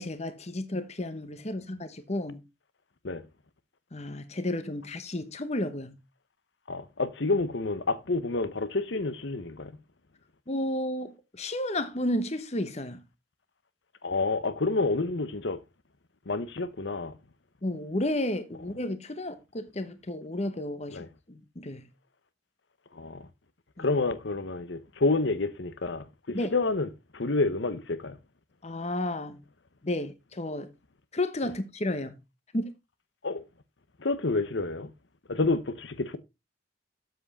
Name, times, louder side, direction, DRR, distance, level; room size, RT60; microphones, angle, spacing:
voice 1, 0.0-2.4 3.9-6.0 10.5-13.0 17.6-21.0 21.3-21.9 23.8-23.9 26.3-26.5 28.6-29.4 29.8-30.7 31.1-32.2 32.5-32.7, left 1 dB, 35° left, 1.0 m, -32 dB
voice 2, 6.7-9.7 14.0-15.6 16.3-17.1 20.9-21.1 22.9-23.3 23.8-28.2 33.2-33.4 34.0-34.9 35.3-36.2, left 3 dB, 65° left, 0.9 m, -29 dB
7.8 x 7.6 x 4.1 m
head